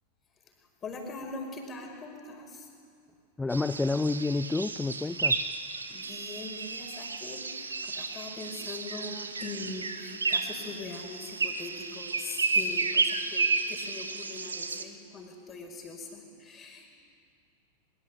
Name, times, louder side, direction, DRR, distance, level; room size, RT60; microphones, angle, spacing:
voice 1, 0.8-2.7 5.9-17.0, left 3 dB, 25° left, 2 dB, 5.4 m, -42 dB
voice 2, 3.4-5.4, left 3 dB, 10° left, 12 dB, 0.6 m, -29 dB
sound 1, 3.5-14.8, right 4 dB, 75° right, 1.3 m, -32 dB
23.5 x 23.0 x 8.4 m, 2.3 s
figure-of-eight pair, 90°, 0 cm